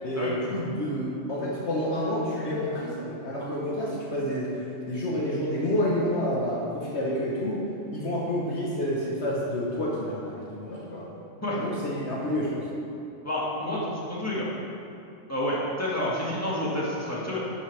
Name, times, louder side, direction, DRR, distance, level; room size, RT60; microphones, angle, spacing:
voice 1, 0.0-7.6 7.9-11.1 11.5-12.6, left 1 dB, 55° left, -5 dB, 1.5 m, -29 dB
voice 2, 13.2-14.5 15.3-17.4, left 1 dB, 10° left, -7 dB, 2.0 m, -29 dB
11.5 x 8.6 x 3.4 m, 2.7 s
omnidirectional pair, 1.4 m